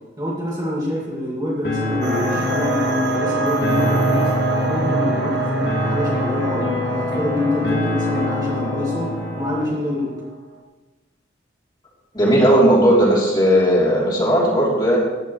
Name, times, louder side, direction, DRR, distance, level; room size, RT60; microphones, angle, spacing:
voice 1, 0.2-4.4 4.7-10.2, left 1 dB, 20° right, -5 dB, 2.1 m, -26 dB
sound 1, 1.6-9.7, left 2 dB, 65° left, 2.7 m, -25 dB
sound 2, 2.0-10.3, right 3 dB, 65° right, 1.3 m, -25 dB
voice 2, 12.1-15.0, equal, 25° left, -5 dB, 3.2 m, -16 dB
14.5 x 10.5 x 3.2 m, 1.2 s
head